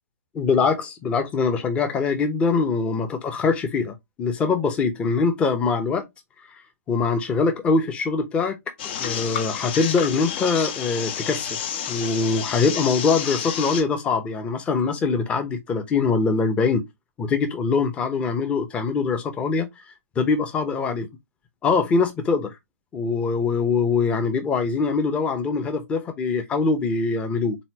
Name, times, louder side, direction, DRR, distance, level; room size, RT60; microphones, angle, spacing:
voice 1, 0.3-6.1 6.9-8.6 8.8-11.6 11.9-16.8 17.2-19.7 20.2-21.1 21.6-22.5 22.9-27.6, left 4 dB, 15° left, 0.9 m, -23 dB
sound 1, 8.8-13.8, left 8 dB, 40° left, 0.8 m, -30 dB
4.2 x 4.0 x 2.8 m
figure-of-eight pair, 125°, 9 cm